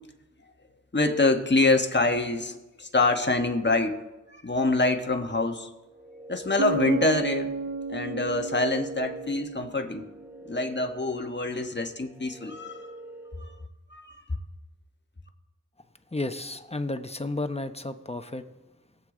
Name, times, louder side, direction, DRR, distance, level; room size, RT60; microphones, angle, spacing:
voice 1, 0.9-4.0 4.3-5.7 6.3-7.5 7.9-10.0 10.4-12.9 13.9-14.4, left 2 dB, 35° left, 5 dB, 1.3 m, -25 dB
sound 1, 5.8-13.7, right 1 dB, 5° right, 1.1 m, -43 dB
Bass guitar, 6.6-10.2, right 3 dB, 55° right, 1.1 m, -33 dB
voice 2, 16.1-18.4, left 2 dB, 20° left, 8 dB, 0.9 m, -32 dB
21.5 x 8.0 x 3.9 m, 1.1 s
wide cardioid pair, 55°, 31 cm